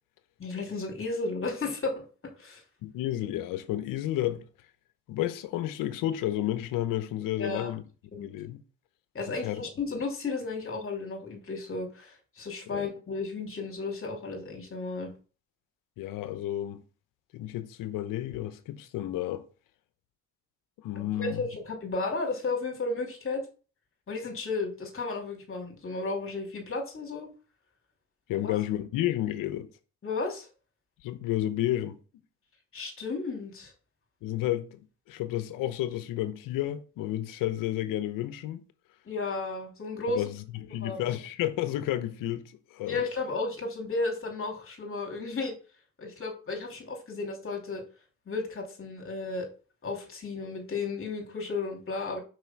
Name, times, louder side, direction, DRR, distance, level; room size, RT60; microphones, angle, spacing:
voice 1, 0.4-2.0 2.4-2.6 7.4-7.7 8.1-8.3 9.1-15.1 21.2-23.4 24.1-27.3 28.3-28.6 30.0-30.5 32.7-33.7 39.1-40.2 40.7-41.0 42.9-45.5 46.0-47.8 48.3-49.5 49.8-52.2, left 3 dB, 40° left, 2.8 m, -33 dB
voice 2, 2.8-4.5 5.1-7.8 8.1-8.6 9.4-9.6 12.7-12.9 16.0-16.8 17.3-19.5 20.8-21.4 28.3-29.7 31.0-32.0 34.2-38.6 40.1-42.4 42.7-43.0, left 13 dB, 85° left, 0.8 m, -31 dB
4.8 x 4.7 x 5.8 m
supercardioid pair, 65°, 32 cm